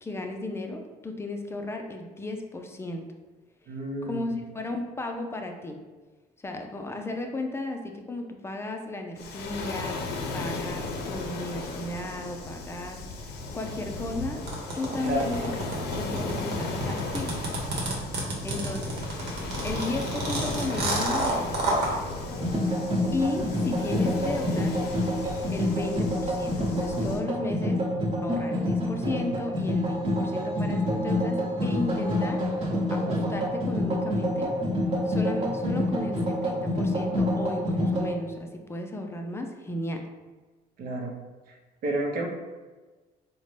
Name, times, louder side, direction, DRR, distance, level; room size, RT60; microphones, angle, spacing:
voice 1, 0.0-3.1 4.0-5.8 6.4-13.0 13.5-14.4 14.7-15.5 15.9-17.4 18.4-19.0 19.6-22.0 23.1-24.8 25.5-27.8 28.2-32.4 32.9-34.5 35.1-40.0, left 2 dB, 15° left, 4 dB, 0.4 m, -34 dB
voice 2, 3.7-4.3 15.0-15.3 18.3-18.5 40.8-41.1 41.8-42.3, right 1 dB, 60° right, 0 dB, 0.8 m, -30 dB
Waves surf, 9.2-27.2, left 3 dB, 70° left, 0.5 m, -36 dB
sound 1, 14.5-21.9, right 2 dB, 80° right, 1.0 m, -29 dB
sound 2, 22.3-38.1, left 1 dB, 40° right, 1.0 m, -27 dB
3.7 x 2.1 x 3.2 m, 1.3 s
cardioid pair, 110°, 17 cm